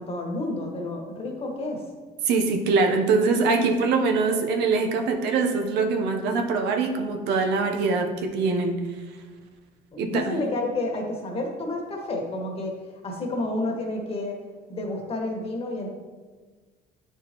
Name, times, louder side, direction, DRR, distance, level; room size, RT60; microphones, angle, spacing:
voice 1, 0.0-1.8 9.9-12.8 13.0-14.4 14.7-15.9, left 2 dB, 35° left, 1 dB, 1.5 m, -30 dB
voice 2, 2.2-8.8 10.0-10.3, right 4 dB, 90° right, 4 dB, 0.8 m, -23 dB
9.4 x 4.7 x 3.0 m, 1.4 s
cardioid pair, 110°, 17 cm